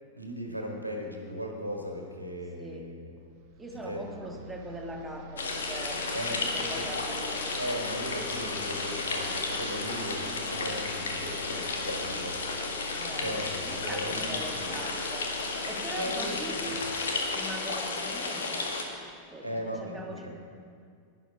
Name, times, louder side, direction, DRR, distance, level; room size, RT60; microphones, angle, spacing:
voice 1, 0.1-3.1 3.8-4.2 6.1-6.4 6.7-6.8 7.6-12.4 13.2-14.4 15.9-16.4 16.8-16.9 19.4-20.3, equal, 85° right, 1 dB, 1.6 m, -37 dB
voice 2, 2.6-2.9 3.6-7.6 13.0-16.9 17.3-18.8 19.3-20.3, right 1 dB, 10° right, 1 dB, 1.6 m, -42 dB
sound 1, 3.2-18.7, equal, 45° right, 0.7 m, -46 dB
sound 2, 5.4-18.8, left 3 dB, 65° left, 1.6 m, -33 dB
Gull seagull, 5.9-11.7, left 1 dB, 80° left, 2.5 m, -51 dB
11.5 x 11.0 x 4.9 m, 2.3 s
figure-of-eight pair, 90°, 0 cm